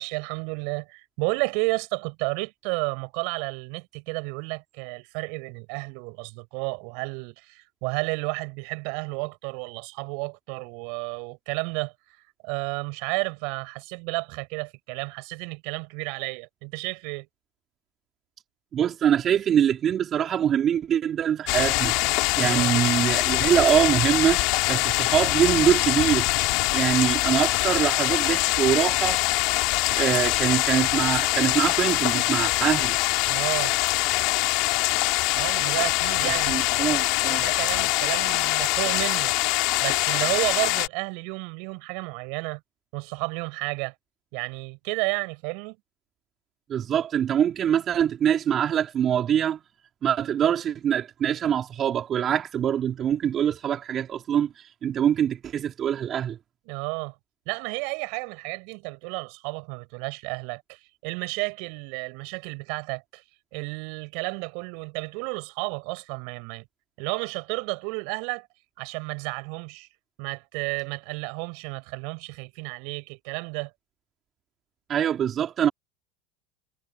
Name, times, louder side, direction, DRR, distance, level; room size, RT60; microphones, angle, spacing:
voice 1, 0.0-11.9 12.4-17.3 22.3-22.8 33.3-33.8 35.3-39.4 39.8-42.6 42.9-43.9 44.3-45.8 56.7-57.1 57.5-63.2 63.5-66.6 67.0-68.5 68.8-69.9 70.2-73.7, right 37 dB, 65° right, 6.2 m, -32 dB
voice 2, 18.7-21.9 22.4-26.3 26.7-29.2 29.9-32.9 36.2-37.4 46.7-49.6 50.0-56.4 74.9-75.7, right 9 dB, 40° right, 4.7 m, -24 dB
sound 1, 21.5-40.9, left 26 dB, 60° left, 4.7 m, -24 dB
hypercardioid pair, 80°, 0 cm